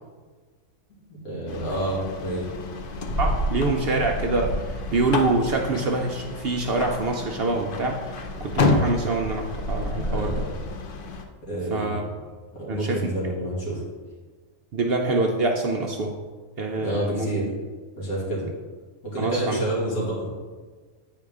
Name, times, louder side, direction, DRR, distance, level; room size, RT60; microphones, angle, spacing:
voice 1, 1.1-2.5 10.0-10.5 11.4-12.0 12.5-13.8 16.8-17.5 18.0-18.4 19.0-20.3, right 1 dB, 80° left, -6 dB, 2.7 m, -28 dB
sound 1, 1.5-11.3, left 2 dB, 50° left, 0.7 m, -29 dB
voice 2, 3.2-10.4 11.7-12.0 12.7-13.0 14.7-16.1 16.6-17.3 19.2-19.6, right 2 dB, 60° right, 2 dB, 0.7 m, -25 dB
8.9 x 4.6 x 3.6 m, 1.4 s
omnidirectional pair, 1.5 m